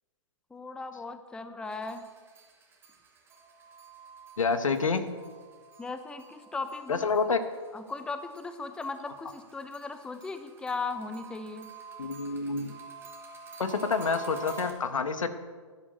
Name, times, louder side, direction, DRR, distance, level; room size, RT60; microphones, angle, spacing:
voice 1, 0.5-2.1 5.8-7.1 7.7-11.7, left 3 dB, 5° left, 9 dB, 0.6 m, -37 dB
sound 1, 1.7-7.9 8.3-14.7, right 3 dB, 15° right, 2.3 m, -47 dB
voice 2, 4.4-5.1 6.9-7.4 12.0-12.7 13.6-15.3, left 4 dB, 80° left, 10 dB, 1.4 m, -28 dB
12.0 x 11.0 x 6.5 m, 1.5 s
hypercardioid pair, 130°, 17 cm